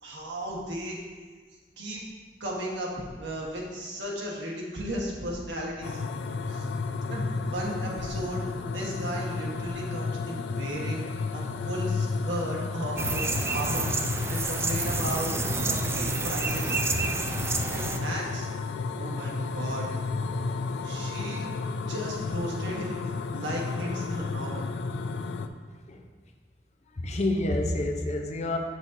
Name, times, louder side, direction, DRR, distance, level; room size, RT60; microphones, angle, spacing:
voice 1, 0.0-1.0 1.8-2.0 2.4-6.0 6.5-6.7 7.1-11.0 11.3-13.9 14.3-15.3 15.7-16.8 17.7-18.5 18.9-19.9 20.4-20.5 20.8-23.0 23.3-24.7, right 1 dB, 85° right, -3 dB, 1.4 m, -35 dB
sound 1, 5.8-25.5, left 4 dB, 75° left, 0.4 m, -32 dB
sound 2, 13.0-18.0, right 3 dB, 15° right, 0.3 m, -29 dB
voice 2, 27.0-28.6, left 1 dB, 40° left, 3 dB, 0.6 m, -28 dB
7.2 x 6.2 x 2.7 m, 1.5 s
head